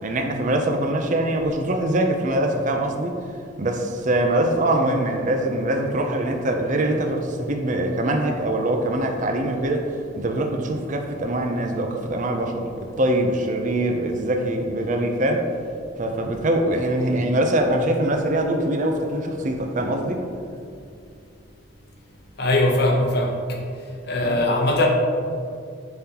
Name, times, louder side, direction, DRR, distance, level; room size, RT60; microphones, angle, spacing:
voice 1, 0.0-3.2 3.6-15.5 16.0-20.2 24.2-24.4, right 1 dB, 35° right, 3 dB, 0.5 m, -23 dB
voice 2, 22.4-23.6 24.0-24.9, left 1 dB, 50° left, 1 dB, 0.9 m, -21 dB
10.5 x 3.8 x 2.9 m, 2.4 s
head